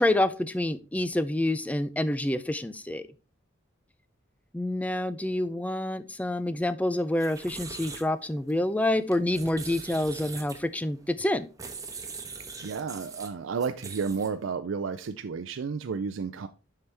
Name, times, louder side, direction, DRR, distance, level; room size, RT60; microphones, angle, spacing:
voice 1, 0.0-3.1 4.5-11.5, left 1 dB, 10° left, 0.4 m, -27 dB
sound 1, 7.1-14.5, right 4 dB, 20° right, 1.0 m, -43 dB
voice 2, 12.6-16.5, right 5 dB, 85° right, 0.4 m, -32 dB
7.6 x 5.7 x 3.3 m
head